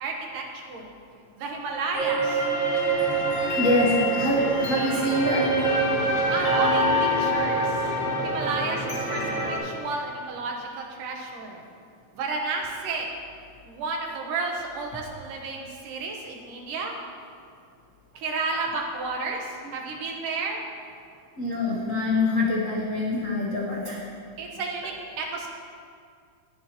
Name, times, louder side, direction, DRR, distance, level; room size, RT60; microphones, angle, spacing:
voice 1, 0.0-0.9 1.4-2.5 3.9-4.0 6.3-7.8 8.2-11.6 12.1-13.1 13.7-16.9 18.1-20.6 24.4-25.5, right 3 dB, 85° right, 1 dB, 2.8 m, -32 dB
sound 1, 1.9-9.6, right 1 dB, 25° left, 3.3 m, -25 dB
voice 2, 3.6-5.5 18.5-18.6 21.4-24.0, left 1 dB, 65° left, -5 dB, 0.7 m, -25 dB
21.0 x 7.3 x 3.0 m, 2.2 s
omnidirectional pair, 3.6 m